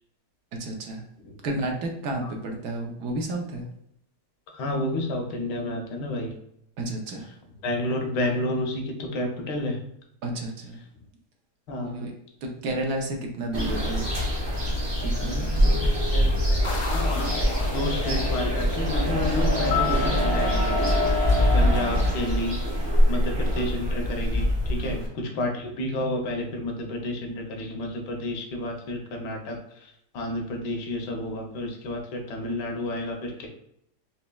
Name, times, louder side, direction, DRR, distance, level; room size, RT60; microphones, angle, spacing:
voice 1, 0.6-1.0 1.4-3.6 6.8-7.3 10.2-10.8 12.0-12.1 12.4-14.1 15.0-15.8 24.8-24.9, right 2 dB, 70° right, 2 dB, 1.1 m, -31 dB
voice 2, 1.2-1.5 2.2-2.3 4.5-6.3 7.6-9.8 11.7-12.1 16.1-17.3 17.7-20.7 21.5-22.6 23.1-33.5, left 1 dB, 85° left, 2 dB, 1.3 m, -30 dB
sound 1, 13.5-25.1, equal, 40° right, 0.3 m, -24 dB
sound 2, 16.6-21.2, left 2 dB, 55° left, 0.5 m, -37 dB
sound 3, 19.7-23.7 24.0-24.1, left 13 dB, 70° left, 0.9 m, -35 dB
4.2 x 2.9 x 2.2 m, 0.74 s
omnidirectional pair, 1.8 m